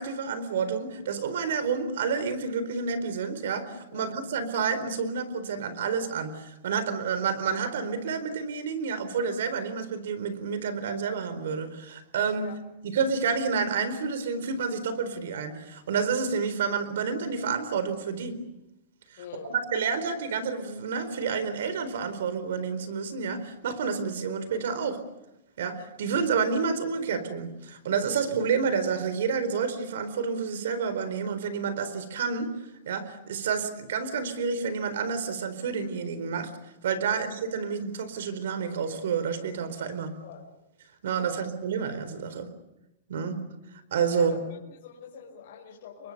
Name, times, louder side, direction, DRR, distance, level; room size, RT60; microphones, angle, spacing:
voice 1, 0.0-12.5 12.8-18.4 19.5-25.0 25.6-32.5 32.8-36.5 36.8-40.1 41.0-42.5 43.1-43.4 43.9-44.4, right 5 dB, 60° right, 12 dB, 4.3 m, -29 dB
voice 2, 19.2-19.6 37.0-37.3 40.2-40.4 41.2-41.4 44.1-46.1, left 7 dB, 45° left, -3 dB, 5.3 m, -45 dB
30.0 x 23.5 x 6.7 m, 0.93 s
supercardioid pair, 180°, 0 cm